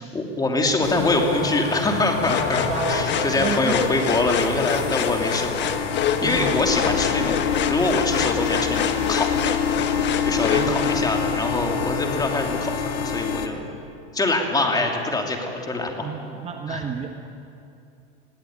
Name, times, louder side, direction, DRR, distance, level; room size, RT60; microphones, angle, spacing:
voice 1, 0.0-5.7 6.0-9.5 10.2-13.7 14.1-16.1 16.7-16.8, left 2 dB, 10° left, 2 dB, 2.8 m, -24 dB
sound 1, 0.8-13.5, left 6 dB, 70° left, 1.8 m, -27 dB
sound 2, 2.2-11.0, left 8 dB, 35° left, 1.5 m, -27 dB
voice 2, 2.7-3.8 6.2-6.7 10.5-11.1 14.6-14.9 16.0-17.1, right 7 dB, 20° right, 4 dB, 1.1 m, -31 dB
21.5 x 15.5 x 8.8 m, 2.7 s
hypercardioid pair, 120°, 32 cm